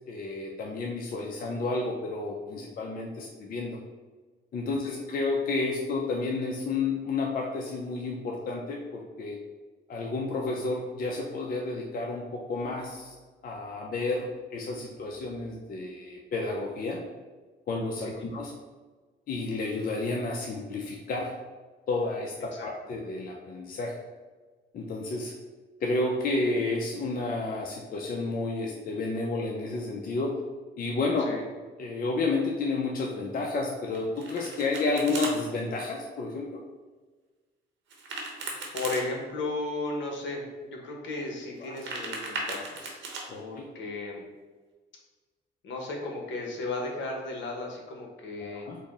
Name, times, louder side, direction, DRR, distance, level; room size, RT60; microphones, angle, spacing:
voice 1, 0.1-3.8 4.5-9.4 9.9-13.2 13.4-17.0 17.7-18.5 19.3-21.3 21.9-22.3 22.6-24.0 24.7-25.3 25.8-30.3 30.8-31.3 31.8-36.6 41.6-41.7 43.3-43.7 48.4-48.8, left 3 dB, 45° left, -1 dB, 0.5 m, -31 dB
Domestic sounds home sounds, 33.9-35.3 37.9-39.0 41.6-43.2, right 3 dB, 75° right, 0.9 m, -37 dB
voice 2, 38.7-43.0 43.4-44.2 45.6-48.7, left 2 dB, 70° left, 0 dB, 0.9 m, -35 dB
4.1 x 2.1 x 3.5 m, 1.3 s
cardioid pair, 90°, 20 cm